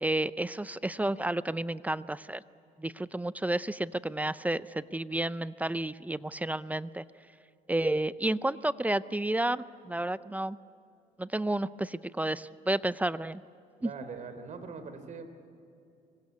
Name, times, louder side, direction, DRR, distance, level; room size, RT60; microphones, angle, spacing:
voice 1, 0.0-2.4 2.8-7.0 7.7-10.6 11.2-13.4 13.8-13.9, right 1 dB, 10° right, 16 dB, 0.5 m, -31 dB
voice 2, 13.8-15.3, right 5 dB, 45° right, 9 dB, 3.4 m, -42 dB
25.0 x 23.5 x 8.5 m, 2.5 s
cardioid pair, 110°, 17 cm